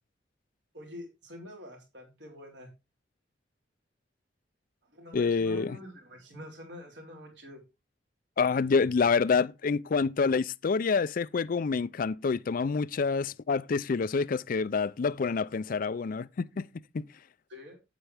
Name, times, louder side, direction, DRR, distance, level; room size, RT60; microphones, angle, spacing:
voice 1, 0.7-2.7 4.9-7.6 17.5-17.8, left 1 dB, 70° right, 3.9 m, -46 dB
voice 2, 5.1-5.8 8.4-16.6 16.9-17.1, left 5 dB, 50° left, 0.4 m, -27 dB
9.0 x 9.0 x 3.4 m
head